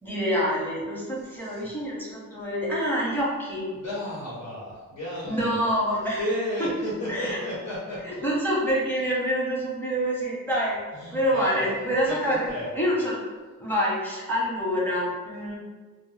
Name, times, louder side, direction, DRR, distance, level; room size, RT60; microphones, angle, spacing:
voice 1, 0.0-3.7 5.3-6.2 6.6-6.7 7.1-7.4 8.0-10.8 11.1-12.5 12.7-13.2 13.6-15.6, equal, 5° left, -6 dB, 0.8 m, -26 dB
voice 2, 1.4-1.7 3.7-5.7 6.2-8.2 10.9-12.7, equal, 60° left, -7 dB, 0.9 m, -33 dB
2.1 x 2.0 x 3.2 m, 1.4 s
cardioid pair, 75°, 31 cm